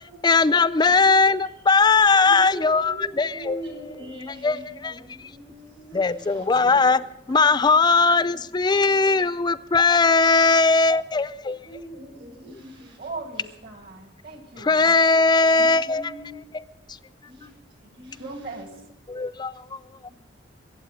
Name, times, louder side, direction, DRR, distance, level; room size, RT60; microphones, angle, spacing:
voice 1, 0.2-3.6 4.4-5.0 5.9-7.0 7.3-11.7 14.6-16.1 19.1-20.1, left 4 dB, 25° left, 0.4 m, -19 dB
voice 2, 1.6-7.1 7.6-8.4 11.6-13.1 13.4-13.5 15.2-16.4 17.2-17.5 17.8-18.9 20.1-20.2, right 1 dB, 80° right, 6.4 m, -43 dB
voice 3, 6.4-6.7 7.3-7.6 13.0-14.9 18.2-18.7, right 3 dB, 55° right, 2.3 m, -39 dB
23.0 x 8.4 x 5.0 m
head